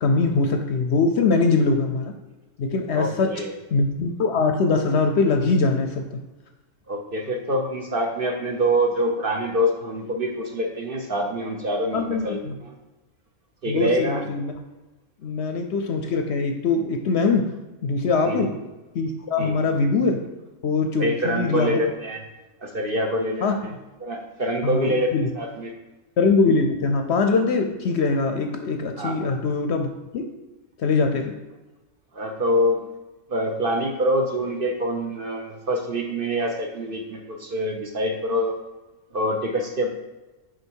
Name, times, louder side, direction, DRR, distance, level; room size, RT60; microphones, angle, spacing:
voice 1, 0.0-2.1 2.6-3.3 3.7-6.2 11.9-12.5 13.7-14.5 15.2-17.4 17.8-18.5 18.9-20.2 20.6-21.8 23.4-23.6 24.6-25.3 26.2-29.9 30.1-30.3 30.8-31.3, left 4 dB, 60° left, 5 dB, 0.8 m, -22 dB
voice 2, 2.9-3.6 6.9-12.8 13.6-14.2 18.3-18.5 19.4-19.7 21.0-22.2 22.6-23.7 24.0-25.7 29.0-29.2 32.1-32.8 33.3-38.5 39.1-39.9, equal, 50° right, 2 dB, 0.8 m, -25 dB
6.5 x 5.2 x 4.5 m, 1.1 s
omnidirectional pair, 1.5 m